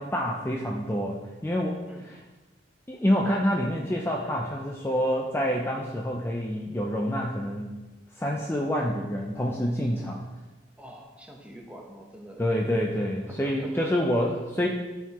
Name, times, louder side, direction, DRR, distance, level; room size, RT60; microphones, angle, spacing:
voice 1, 0.0-2.2 2.9-7.7 8.2-10.2 12.4-14.7, equal, 15° left, -1 dB, 0.5 m, -27 dB
voice 2, 10.8-12.4 13.3-13.9, right 1 dB, 5° right, 0 dB, 0.9 m, -45 dB
12.5 x 4.7 x 3.0 m, 1.2 s
head